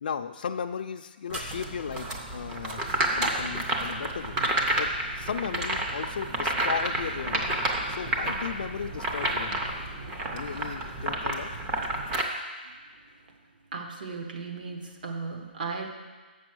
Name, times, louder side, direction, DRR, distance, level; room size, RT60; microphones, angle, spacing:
voice 1, 0.0-2.9 3.2-4.4 4.8-7.6 7.9-9.8 10.3-11.5, left 7 dB, 50° left, 6 dB, 0.4 m, -36 dB
sound 1, 1.3-12.2, right 1 dB, 10° right, 0.5 m, -30 dB
sound 2, 6.8-12.1, right 1 dB, 70° right, 1.7 m, -50 dB
voice 2, 13.7-15.9, right 4 dB, 50° right, 3 dB, 1.2 m, -36 dB
7.6 x 6.0 x 6.1 m, 1.4 s
hypercardioid pair, 175°, 6 cm